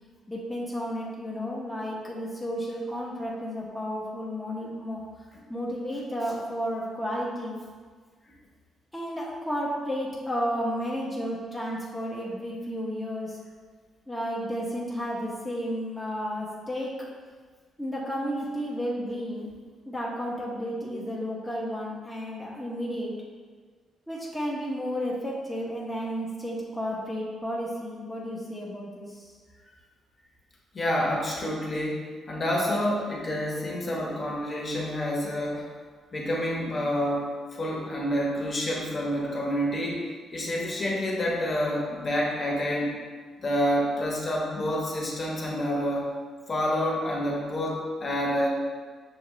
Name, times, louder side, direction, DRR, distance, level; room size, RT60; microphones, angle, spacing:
voice 1, 0.3-5.0 5.5-7.6 8.9-13.4 14.1-16.9 17.8-19.5 19.8-23.1 24.1-29.3, equal, 5° left, -5 dB, 0.8 m, -32 dB
voice 2, 30.7-35.7 36.1-40.1 40.3-42.9 43.4-46.1 46.5-48.5, equal, 40° left, -3 dB, 1.0 m, -28 dB
6.3 x 2.3 x 3.0 m, 1.6 s
cardioid pair, 90°, 0 cm